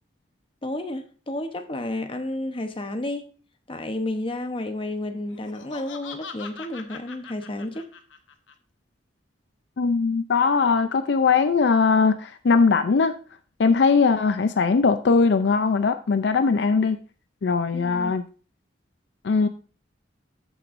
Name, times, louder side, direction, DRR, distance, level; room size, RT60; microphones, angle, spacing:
voice 1, 0.6-3.3 3.7-7.9 17.7-18.1, left 1 dB, 30° left, 0.8 m, -31 dB
Laughter, 5.3-8.5, left 5 dB, 80° left, 0.9 m, -41 dB
voice 2, 9.8-13.1 13.6-17.0 17.4-18.2 19.2-19.5, left 4 dB, 60° left, 0.4 m, -20 dB
13.5 x 6.1 x 2.5 m
head